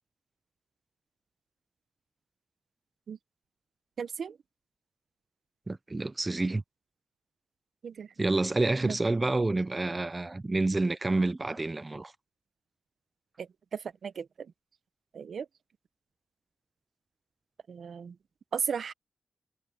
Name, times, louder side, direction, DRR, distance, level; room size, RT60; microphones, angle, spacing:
voice 1, 4.0-4.3 7.8-8.1 8.8-8.9 13.4-13.5 13.7-14.3 15.1-15.5 17.7-18.1 18.5-18.9, right 6 dB, 75° right, 0.9 m, -35 dB
voice 2, 5.7-6.6 8.2-12.1, right 2 dB, 25° right, 0.5 m, -28 dB
wide cardioid pair, 90°, 0 cm